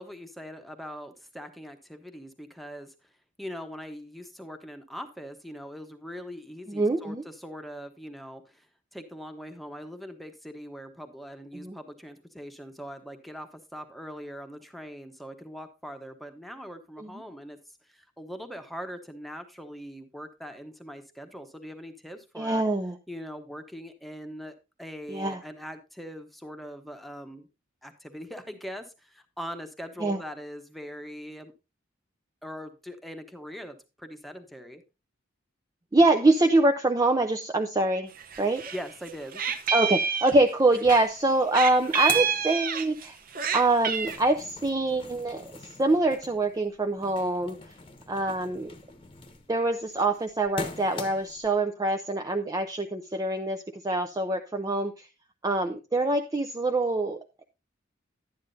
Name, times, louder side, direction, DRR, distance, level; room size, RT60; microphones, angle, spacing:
voice 1, 0.0-2.9 3.4-8.7 8.9-17.6 17.8-22.6 23.1-27.5 27.8-31.5 32.4-34.8 38.7-39.4, equal, ahead, 6 dB, 1.0 m, -41 dB
voice 2, 6.7-7.2 11.5-11.8 17.0-17.1 22.4-23.0 25.1-25.4 30.0-30.2 35.9-38.1 38.4-38.6 39.7-43.2 43.5-45.4 45.8-47.6 48.1-48.7 49.5-55.1 55.4-57.4, right 2 dB, 20° right, 5 dB, 0.5 m, -25 dB
Meow, 38.2-38.8 39.1-41.0 41.5-43.1 43.3-44.2, right 7 dB, 45° right, 0.8 m, -28 dB
sound 1, 41.1-41.2 41.4-43.2 43.6-51.5, left 3 dB, 25° left, 1.0 m, -42 dB
11.5 x 9.6 x 2.7 m, 0.27 s
head